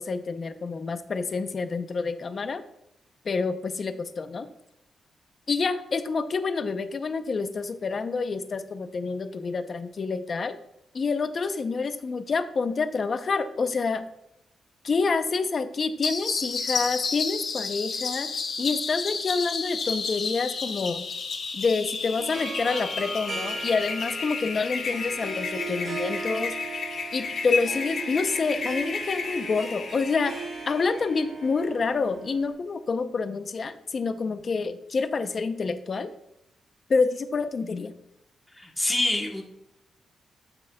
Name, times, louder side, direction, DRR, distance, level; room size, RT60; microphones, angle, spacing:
voice 1, 0.0-2.6 3.2-4.5 5.5-10.6 10.9-14.0 14.8-18.3 18.6-21.0 21.5-26.5 27.1-36.1 36.9-37.9, left 4 dB, 40° left, 10 dB, 0.5 m, -28 dB
sound 1, 16.0-31.2, left 5 dB, 55° left, 1.1 m, -32 dB
Harp, 22.2-32.5, right 4 dB, 45° right, 1.0 m, -38 dB
voice 2, 38.5-39.4, left 1 dB, 5° left, 1 dB, 1.0 m, -26 dB
13.5 x 5.9 x 2.2 m, 0.81 s
wide cardioid pair, 160°, 0 cm